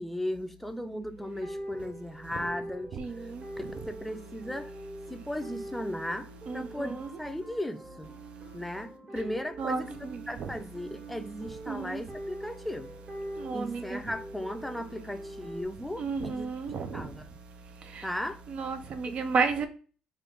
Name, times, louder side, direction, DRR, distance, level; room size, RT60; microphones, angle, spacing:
voice 1, 0.0-3.3 3.6-4.7 5.1-6.9 7.2-8.1 8.5-13.0 13.5-16.5 16.9-17.3 18.0-18.4 19.1-19.2, left 1 dB, 5° left, 0.5 m, -36 dB
sound 1, 1.2-15.6, right 1 dB, 40° right, 1.7 m, -44 dB
voice 2, 6.5-7.1 9.6-9.8 11.7-12.0 13.4-14.0 16.0-16.9 18.5-19.7, right 4 dB, 55° right, 0.6 m, -31 dB
3.4 x 2.5 x 3.8 m
cardioid pair, 85°, 2 cm